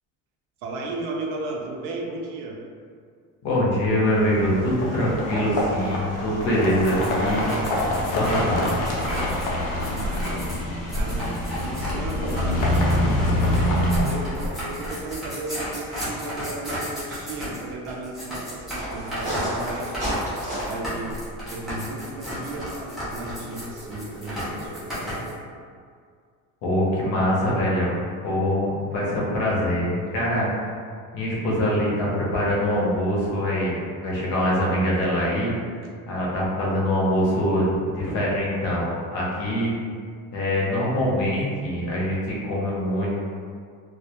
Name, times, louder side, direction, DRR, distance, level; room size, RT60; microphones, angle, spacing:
voice 1, 0.6-2.6 9.5-10.3 10.9-20.1 20.5-21.2 21.5-25.3, right 2 dB, 85° right, 0 dB, 0.5 m, -35 dB
voice 2, 3.4-7.5 8.1-9.0 26.6-27.9 28.2-30.5 31.1-33.8 34.0-35.6 36.1-39.7 40.3-43.1, equal, 45° left, -5 dB, 0.6 m, -24 dB
sound 1, 4.0-14.9, left 1 dB, 85° left, 0.6 m, -26 dB
sound 2, 6.7-25.3, equal, ahead, 0.4 m, -34 dB
footsteps river gravel, 18.7-21.0, right 1 dB, 25° right, 0.8 m, -30 dB
2.1 x 2.1 x 2.8 m, 2.1 s
cardioid pair, 180°, 34 cm